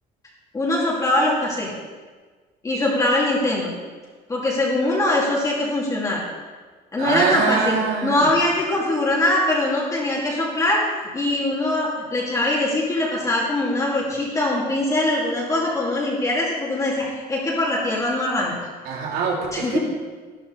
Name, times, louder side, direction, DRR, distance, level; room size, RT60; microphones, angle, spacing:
voice 1, 0.5-1.7 2.6-3.7 4.3-6.2 6.9-7.8 8.0-10.8 11.1-18.5 19.5-19.8, left 1 dB, 20° left, -4 dB, 2.4 m, -22 dB
voice 2, 7.0-8.3 18.8-19.8, right 5 dB, 70° right, -1 dB, 3.0 m, -23 dB
13.5 x 12.0 x 4.0 m, 1.4 s
cardioid pair, 150°, 17 cm